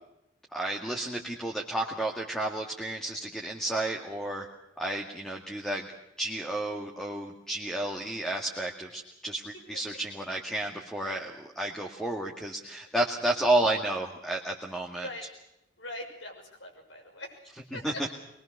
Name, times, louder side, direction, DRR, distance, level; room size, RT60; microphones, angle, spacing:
voice 1, 0.5-4.5 4.8-5.9 6.2-15.1 17.7-17.9, right 1 dB, 5° left, 0 dB, 2.1 m, -31 dB
voice 2, 15.8-17.4 17.7-18.1, left 1 dB, 85° left, 2 dB, 6.7 m, -41 dB
22.5 x 22.5 x 6.7 m, 0.85 s
head